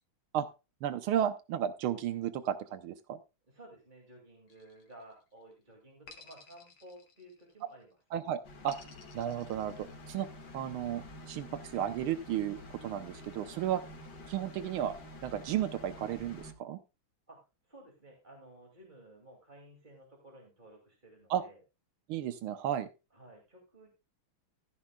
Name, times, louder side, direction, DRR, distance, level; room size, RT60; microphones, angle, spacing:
voice 1, 0.8-3.2 8.1-8.8 9.1-10.3 10.5-13.8 14.3-14.9 15.2-16.8 21.3-21.4 22.1-22.9, right 10 dB, 85° right, 11 dB, 1.6 m, -33 dB
voice 2, 3.5-8.0 17.3-21.6 23.1-23.9, right 1 dB, 20° right, 1 dB, 2.4 m, -55 dB
sound 1, 4.5-5.3 6.1-7.7 8.7-10.3, left 5 dB, 75° left, 2.5 m, -56 dB
sound 2, 8.4-16.5, left 1 dB, 55° left, 2.4 m, -49 dB
15.0 x 10.0 x 2.3 m, 0.28 s
omnidirectional pair, 2.3 m